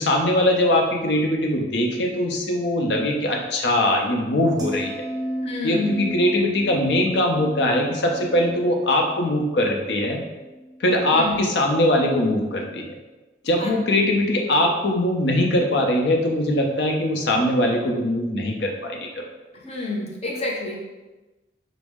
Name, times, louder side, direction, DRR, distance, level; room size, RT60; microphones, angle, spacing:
voice 1, 0.0-4.9 5.6-10.2 10.8-12.9 13.4-19.2, left 1 dB, 70° left, 1 dB, 0.6 m, -21 dB
sound 1, 4.6-10.9 11.2-11.5, equal, 20° right, 0.5 m, -34 dB
voice 2, 5.4-6.0 11.1-11.4 13.6-13.8 19.6-20.8, left 2 dB, 35° left, -1 dB, 0.7 m, -28 dB
5.1 x 2.0 x 3.5 m, 1.1 s
head